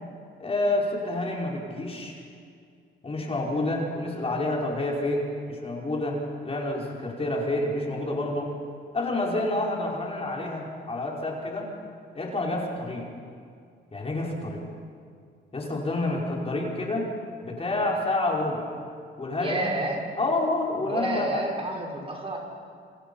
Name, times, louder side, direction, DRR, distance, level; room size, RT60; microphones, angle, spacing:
voice 1, 0.4-2.2 3.0-6.2 6.4-8.5 8.9-11.7 12.1-13.1 13.9-14.6 15.5-17.1 17.4-18.7 19.2-19.6 20.2-21.5, left 2 dB, 30° left, -2 dB, 5.5 m, -28 dB
voice 2, 19.3-20.1 20.8-22.4, right 1 dB, 30° right, 0 dB, 6.0 m, -31 dB
28.0 x 27.0 x 5.8 m, 2.3 s
cardioid pair, 90°, 20 cm